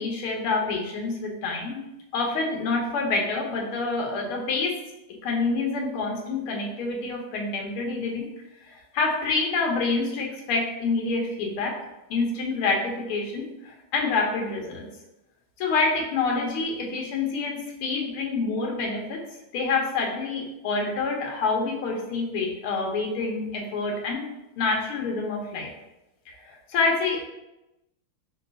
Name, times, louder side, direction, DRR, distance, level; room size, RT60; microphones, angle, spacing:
voice 1, 0.0-1.8 2.1-4.8 5.2-8.3 8.6-11.7 12.1-14.9 15.6-19.2 19.5-24.3 24.6-25.7 26.3-27.2, left 3 dB, 85° left, 0 dB, 1.8 m, -27 dB
5.8 x 2.3 x 3.9 m, 0.94 s
omnidirectional pair, 2.3 m